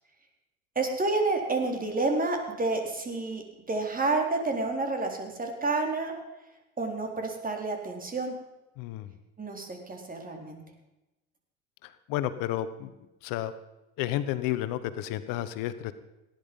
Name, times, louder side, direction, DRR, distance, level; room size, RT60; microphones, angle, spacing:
voice 1, 0.8-3.4 3.7-6.1 6.8-8.4 9.4-10.6, right 3 dB, 25° right, 3 dB, 4.1 m, -29 dB
voice 2, 8.8-9.1 11.8-12.9 13.2-13.5 14.0-15.9, left 13 dB, 65° left, 13 dB, 1.2 m, -31 dB
18.5 x 11.0 x 5.5 m, 0.98 s
hypercardioid pair, 80°, 35 cm